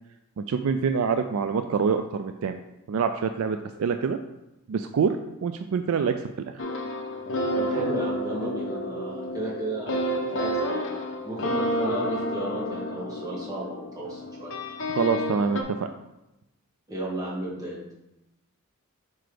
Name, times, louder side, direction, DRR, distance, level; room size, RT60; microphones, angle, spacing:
voice 1, 0.4-2.6 2.9-4.2 4.7-5.2 5.4-6.2 6.5-6.6 14.9-15.9, right 6 dB, 75° right, 8 dB, 0.3 m, -26 dB
sound 1, 6.6-15.6, equal, 60° left, 0.9 m, -30 dB
voice 2, 7.6-14.5 16.9-17.8, right 1 dB, 15° right, -5 dB, 1.8 m, -34 dB
7.6 x 4.5 x 3.4 m, 0.93 s
head